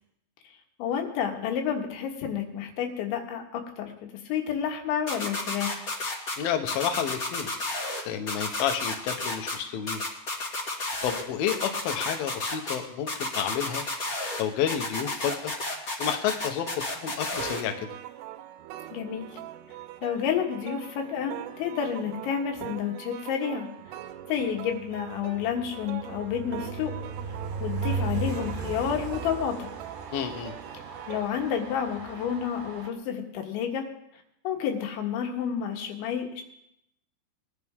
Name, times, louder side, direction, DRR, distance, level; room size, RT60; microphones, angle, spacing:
voice 1, 0.8-5.9 18.9-19.4 20.0-23.7 24.3-26.9 27.6-29.7 31.1-33.9 34.5-36.4, left 8 dB, 85° left, 3 dB, 3.9 m, -30 dB
sound 1, 5.1-6.3 6.7-8.0 8.3-9.5 9.9-11.2 11.5-12.7 13.1-14.4 14.7-17.6, left 2 dB, 40° left, 1.3 m, -31 dB
voice 2, 6.4-7.5 8.1-10.0 11.0-13.8 14.4-15.5 16.0-16.7 17.0-17.9 30.1-30.5, left 9 dB, 70° left, 6 dB, 2.5 m, -30 dB
sound 2, 17.3-31.3, right 13 dB, 80° right, 2.8 m, -42 dB
Train, 24.5-32.9, right 4 dB, 55° right, 1.9 m, -36 dB
21.5 x 11.0 x 3.6 m, 0.78 s
omnidirectional pair, 5.2 m